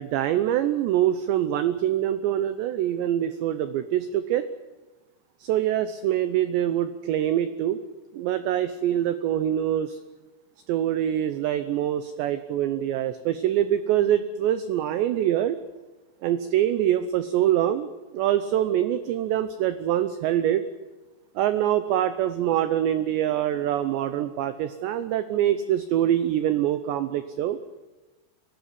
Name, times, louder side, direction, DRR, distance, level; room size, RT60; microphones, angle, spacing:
voice 1, 0.0-4.4 5.4-7.8 8.1-10.0 10.7-15.6 16.2-20.6 21.4-27.6, right 11 dB, 75° right, 11 dB, 2.7 m, -24 dB
23.5 x 19.0 x 9.9 m, 1.2 s
omnidirectional pair, 5.9 m